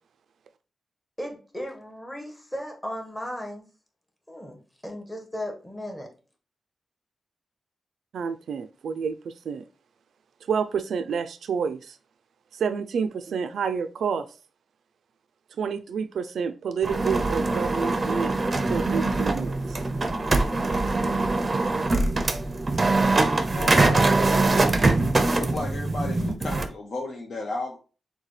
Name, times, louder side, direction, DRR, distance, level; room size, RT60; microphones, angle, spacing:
voice 1, 1.2-3.6 4.3-6.1, equal, 10° left, 1.1 m, -36 dB
voice 2, 8.1-9.6 10.5-12.0 12.5-14.3 15.6-18.3 18.7-19.8, right 6 dB, 85° right, 0.3 m, -29 dB
sound 1, 16.8-26.7, right 2 dB, 30° right, 0.5 m, -23 dB
voice 3, 23.5-24.1 25.2-27.8, left 2 dB, 60° left, 0.7 m, -33 dB
6.5 x 2.2 x 3.1 m
wide cardioid pair, 125°, 0 cm